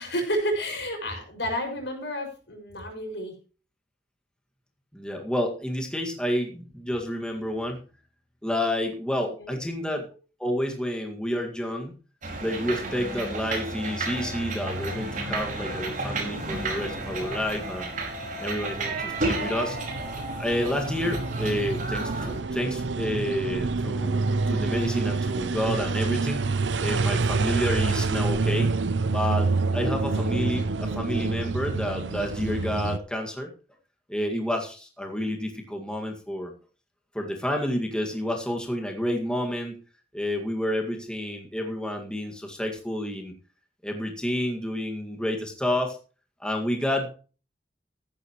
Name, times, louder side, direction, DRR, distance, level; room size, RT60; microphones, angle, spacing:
voice 1, 0.0-3.3 9.4-9.6, equal, 75° left, 3 dB, 5.9 m, -30 dB
voice 2, 4.9-7.8 8.4-10.1 10.4-11.9 12.4-17.9 18.4-19.8 20.4-24.2 24.5-26.5 26.8-28.7 29.1-33.5 34.1-36.5 37.1-39.8 40.1-43.3 43.8-46.0 46.4-47.1, left 1 dB, 5° left, 2 dB, 2.0 m, -29 dB
sound 1, 12.2-22.4, right 2 dB, 45° right, 5.1 m, -32 dB
sound 2, 18.7-33.0, right 3 dB, 90° right, 0.8 m, -27 dB
14.5 x 12.0 x 3.1 m, 0.36 s
head